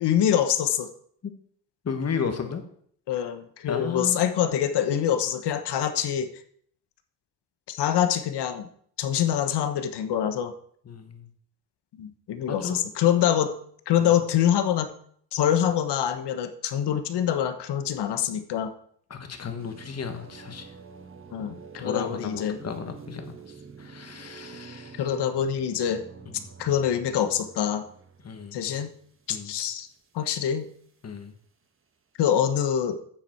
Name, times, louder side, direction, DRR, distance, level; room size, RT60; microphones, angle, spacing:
voice 1, 0.0-0.9 3.1-6.3 7.7-8.7 9.0-10.5 12.0-13.5 13.9-14.9 15.3-18.7 21.3-22.6 25.0-26.0 26.6-27.8 28.5-28.9 29.3-29.9 30.1-30.7 32.2-33.0, left 9 dB, 65° left, 9 dB, 1.2 m, -25 dB
voice 2, 1.8-2.6 3.2-3.3 3.7-4.2 10.8-11.3 12.5-12.8 19.1-20.7 21.8-23.3 23.8-25.1 26.3-26.5 28.2-28.6 29.3-29.5 31.0-31.3, left 6 dB, 35° left, 7 dB, 1.6 m, -34 dB
sound 1, 19.6-30.5, right 5 dB, 30° right, 1.2 m, -47 dB
10.5 x 7.2 x 4.5 m, 0.62 s
cardioid pair, 115°, 43 cm